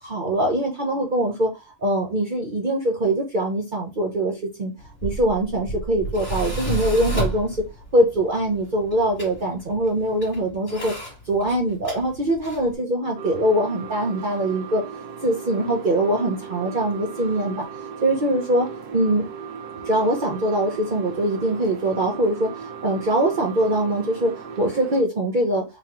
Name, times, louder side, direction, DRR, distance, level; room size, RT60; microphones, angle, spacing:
voice 1, 0.0-1.5 1.8-4.7 5.0-7.7 7.9-10.9 11.3-14.8 15.2-17.6 18.0-18.7 18.9-19.2 19.9-25.6, right 1 dB, 50° right, 0.6 m, -23 dB
Tools, 4.8-12.8, right 1 dB, 20° left, 2.3 m, -32 dB
sound 1, 13.1-25.0, right 6 dB, 80° right, 1.2 m, -37 dB
4.0 x 3.6 x 2.9 m
omnidirectional pair, 1.7 m